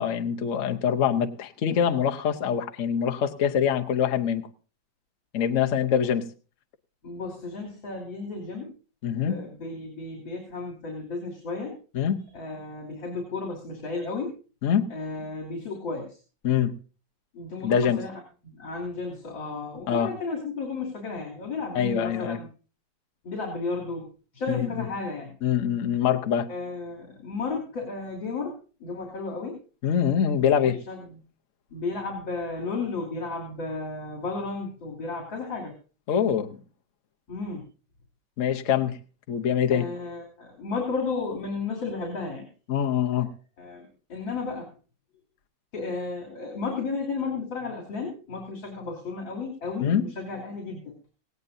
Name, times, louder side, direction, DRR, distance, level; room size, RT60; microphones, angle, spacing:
voice 1, 0.0-4.5 5.3-6.3 9.0-9.3 11.9-12.3 14.6-14.9 16.4-16.7 17.6-18.0 19.9-20.1 21.7-22.4 24.5-24.7 25.4-26.5 29.8-30.8 36.1-36.5 38.4-39.0 39.3-39.9 42.7-43.3 49.8-50.1, left 8 dB, 50° left, 6 dB, 1.1 m, -24 dB
voice 2, 7.0-8.8 9.0-11.8 12.3-14.4 14.9-16.2 17.3-18.1 18.4-22.5 23.2-25.3 26.5-29.6 30.3-31.2 31.7-35.7 37.3-37.6 39.7-42.5 43.1-43.2 43.6-44.7 45.7-50.9, left 4 dB, 75° left, -2 dB, 3.7 m, -33 dB
18.0 x 17.0 x 2.7 m, 0.36 s
omnidirectional pair, 2.1 m